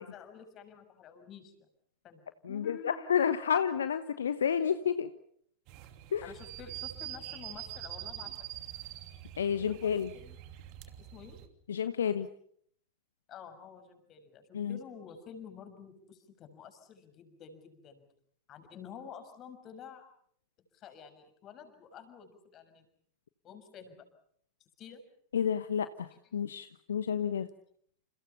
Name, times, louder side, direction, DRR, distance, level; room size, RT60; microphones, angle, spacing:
voice 1, 0.0-1.7 2.0-3.0 6.2-8.7 9.6-10.4 11.0-11.4 13.3-18.1 18.5-20.1 20.7-22.9 23.4-24.0 24.6-25.0, left 7 dB, 30° left, 8 dB, 6.3 m, -50 dB
voice 2, 2.4-5.1 6.1-6.3 9.4-10.1 11.7-12.3 14.5-14.8 25.3-27.5, left 8 dB, 65° left, 12 dB, 1.1 m, -30 dB
sound 1, 5.7-11.5, right 13 dB, 45° right, 2.9 m, -44 dB
30.0 x 29.0 x 5.8 m, 0.65 s
figure-of-eight pair, 90°, 0 cm